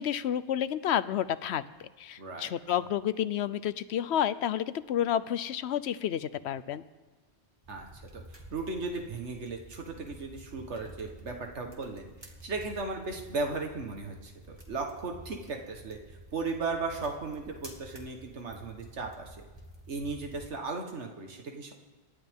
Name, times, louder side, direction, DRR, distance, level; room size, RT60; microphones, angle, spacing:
voice 1, 0.0-1.6 2.0-6.8, left 10 dB, 75° left, 14 dB, 0.9 m, -30 dB
voice 2, 2.2-2.5 7.7-19.4 19.9-21.7, right 3 dB, 85° right, 3 dB, 1.6 m, -36 dB
sound 1, 7.6-20.5, right 1 dB, 20° right, 2.2 m, -50 dB
27.5 x 12.0 x 3.6 m, 1.3 s
omnidirectional pair, 1.1 m